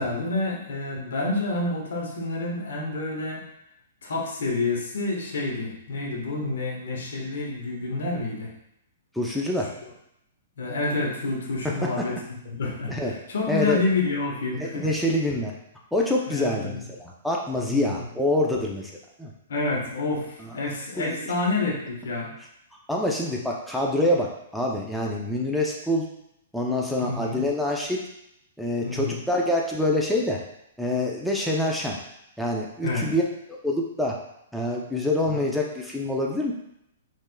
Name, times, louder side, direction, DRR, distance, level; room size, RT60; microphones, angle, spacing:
voice 1, 0.0-3.4 4.0-8.5 10.6-14.9 16.3-16.9 17.7-18.0 19.5-22.3 27.0-27.4 28.8-29.2 32.8-33.1 35.3-35.4, left 3 dB, 75° left, -1 dB, 1.1 m, -28 dB
voice 2, 9.1-9.7 11.6-11.9 12.9-13.1 13.5-13.8 14.6-15.5 15.9-18.9 19.2-19.3 21.0-21.2 22.9-26.1 26.5-28.0 28.6-30.4 30.8-32.0 32.4-33.2 33.5-34.2 34.5-36.5, left 1 dB, ahead, -3 dB, 0.5 m, -26 dB
4.5 x 3.3 x 2.2 m, 0.78 s
hypercardioid pair, 140°, 0 cm